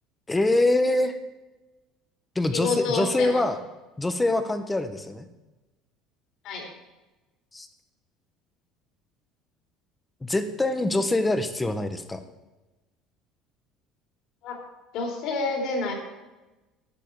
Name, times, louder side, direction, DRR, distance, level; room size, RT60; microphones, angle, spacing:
voice 1, 0.3-1.2 2.3-3.6 4.0-5.3 7.5-7.7 10.2-12.2, left 2 dB, 10° left, 9 dB, 1.0 m, -24 dB
voice 2, 2.5-3.5 6.4-6.6 14.4-14.6 14.9-15.9, left 3 dB, 60° left, 1 dB, 3.8 m, -28 dB
12.0 x 9.7 x 4.8 m, 1.1 s
cardioid pair, 145°, 0 cm